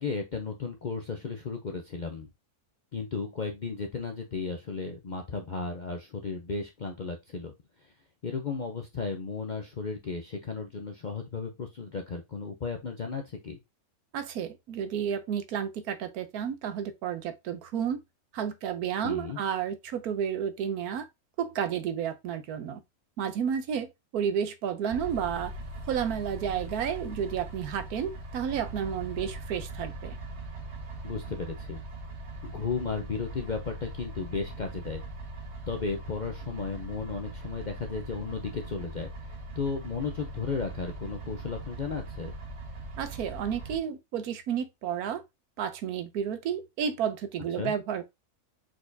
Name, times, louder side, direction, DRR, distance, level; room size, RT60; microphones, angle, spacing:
voice 1, 0.0-2.3 2.9-7.5 8.2-13.6 19.0-19.4 31.0-31.8 32.4-35.0 35.7-39.1 39.6-42.3 47.6-47.7, left 4 dB, 50° left, 0.5 m, -34 dB
voice 2, 14.1-18.0 18.3-21.0 21.4-22.8 23.2-23.9 24.1-25.5 25.9-30.2 43.0-45.2 45.6-48.0, right 8 dB, 80° right, 1.2 m, -31 dB
sound 1, 24.9-43.8, right 2 dB, 50° right, 1.3 m, -41 dB
4.7 x 4.2 x 2.6 m
omnidirectional pair, 1.6 m